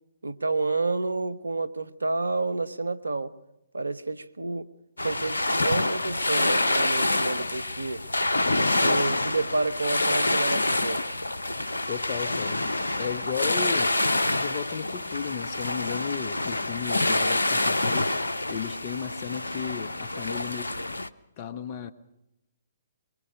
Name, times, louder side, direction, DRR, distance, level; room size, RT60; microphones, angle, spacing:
voice 1, 0.2-3.3 3.7-4.7 5.0-8.0 8.5-11.0, right 3 dB, 85° right, 1.0 m, -29 dB
sound 1, 5.0-21.1, left 2 dB, 85° left, 0.9 m, -27 dB
voice 2, 11.9-12.7 12.9-14.0 14.3-18.1 18.5-20.7 21.4-21.9, left 8 dB, 40° left, 1.5 m, -34 dB
23.5 x 23.5 x 6.2 m
figure-of-eight pair, 130°, 0 cm